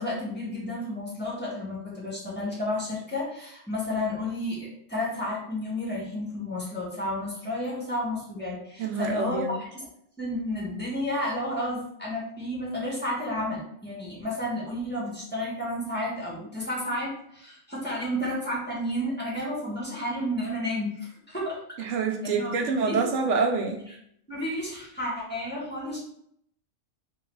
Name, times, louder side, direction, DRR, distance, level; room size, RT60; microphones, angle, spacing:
voice 1, 0.0-9.4 9.7-9.8 10.2-21.6 22.2-23.0 24.3-26.0, left 1 dB, 10° left, -7 dB, 1.5 m, -31 dB
voice 2, 8.8-9.6 21.8-23.9, right 4 dB, 75° right, 4 dB, 0.9 m, -27 dB
3.9 x 2.6 x 4.5 m, 0.70 s
omnidirectional pair, 1.3 m